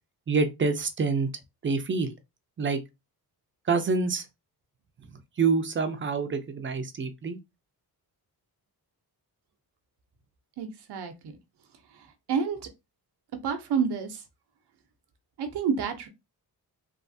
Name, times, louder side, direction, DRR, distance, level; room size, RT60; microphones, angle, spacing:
voice 1, 0.3-1.3 1.6-2.1 2.6-2.8 3.7-4.2 5.4-7.4, right 4 dB, 30° right, 0.5 m, -26 dB
voice 2, 10.6-11.1 12.3-12.7 13.4-14.2 15.4-16.1, right 6 dB, 90° right, 0.8 m, -28 dB
3.3 x 2.4 x 2.6 m
wide cardioid pair, 140°, 39 cm